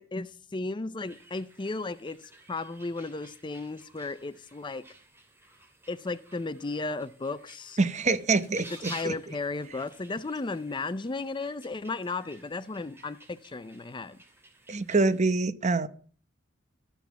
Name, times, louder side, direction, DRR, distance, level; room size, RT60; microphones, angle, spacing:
voice 1, 0.0-4.9 5.9-7.8 8.7-14.2, left 3 dB, 25° left, 0.5 m, -35 dB
sound 1, 1.0-15.2, right 2 dB, 10° right, 2.8 m, -52 dB
voice 2, 7.8-9.1 14.7-15.9, right 3 dB, 35° right, 0.8 m, -25 dB
13.0 x 7.0 x 7.0 m
head